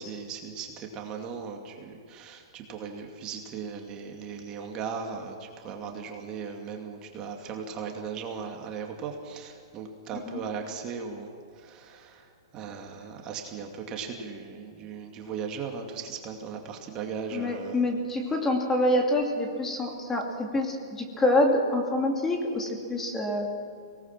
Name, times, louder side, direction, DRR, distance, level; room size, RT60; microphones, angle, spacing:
voice 1, 0.0-17.8, right 6 dB, 30° right, 2 dB, 2.4 m, -38 dB
voice 2, 17.3-23.5, left 1 dB, 15° left, 1 dB, 2.7 m, -26 dB
23.5 x 19.0 x 6.1 m, 2.3 s
hypercardioid pair, 130°, 3 cm